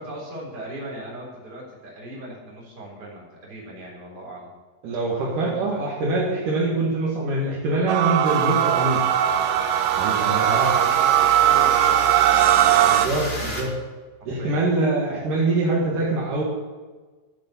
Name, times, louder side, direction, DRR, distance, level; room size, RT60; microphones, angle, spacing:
voice 1, 0.0-4.5 5.1-5.8 10.3-13.0 14.2-14.6, right 1 dB, 30° right, -3 dB, 4.1 m, -39 dB
voice 2, 4.8-9.0 10.0-10.7 12.9-13.7 14.3-16.4, right 2 dB, 65° right, -3 dB, 3.4 m, -24 dB
sound 1, 7.9-13.1, right 12 dB, 85° right, 1.6 m, -19 dB
sound 2, 8.2-13.6, left 1 dB, 20° left, 2.4 m, -33 dB
12.0 x 8.6 x 7.1 m, 1.3 s
omnidirectional pair, 4.0 m